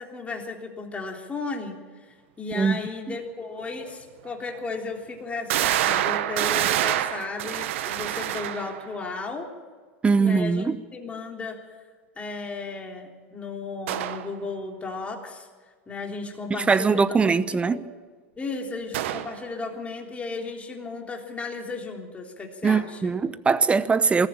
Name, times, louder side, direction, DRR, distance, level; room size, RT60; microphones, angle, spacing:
voice 1, 0.0-1.8 2.4-9.5 10.2-11.6 12.2-15.5 15.9-17.2 17.5-17.9 18.4-23.1, left 3 dB, 20° left, 3.5 m, -35 dB
sound 1, 3.9-4.0 4.6-4.7 5.5-8.9 13.9-14.3 18.9-19.4, right 12 dB, 75° right, 1.2 m, -26 dB
voice 2, 10.0-10.8 16.5-17.8 22.6-24.3, right 5 dB, 15° right, 0.9 m, -21 dB
21.0 x 14.0 x 8.8 m
hypercardioid pair, 110°, 7 cm